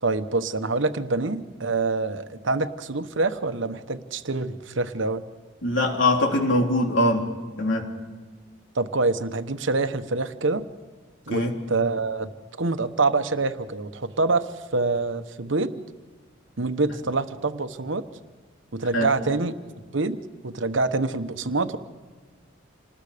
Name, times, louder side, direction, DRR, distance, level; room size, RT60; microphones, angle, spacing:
voice 1, 0.0-5.2 8.7-10.6 11.3-12.3 12.6-14.5 14.7-15.7 16.6-18.0 18.7-19.5 19.9-20.2 20.4-21.8, right 3 dB, 70° right, 9 dB, 1.1 m, -26 dB
voice 2, 5.6-7.3 7.6-7.9 11.3-11.6 18.9-19.1, left 1 dB, 70° left, 1 dB, 3.6 m, -22 dB
28.0 x 20.0 x 5.1 m, 1.4 s
head